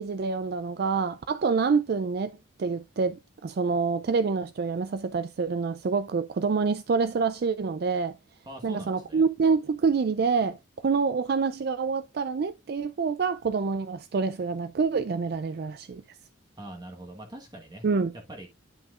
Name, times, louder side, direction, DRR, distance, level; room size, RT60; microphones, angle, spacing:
voice 1, 0.0-2.3 2.6-8.2 8.6-10.6 10.8-16.0 17.8-18.1, right 5 dB, 50° right, 0.4 m, -27 dB
voice 2, 8.5-9.2 16.5-17.9 18.3-18.5, right 1 dB, 20° right, 1.3 m, -42 dB
9.6 x 5.7 x 2.4 m
head